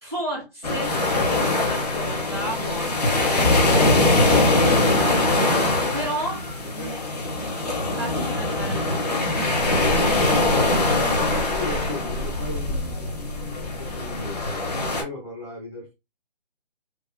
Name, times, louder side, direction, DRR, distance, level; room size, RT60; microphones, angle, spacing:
voice 1, 0.0-5.6 5.9-6.4 6.7-7.0 7.6-10.2, right 1 dB, 25° right, -1 dB, 0.4 m, -34 dB
sound 1, 0.6-15.0, left 2 dB, 40° left, 1.0 m, -22 dB
voice 2, 11.2-15.9, left 2 dB, 5° right, -7 dB, 1.0 m, -37 dB
3.0 x 2.4 x 2.3 m, 0.25 s
figure-of-eight pair, 160°, 32 cm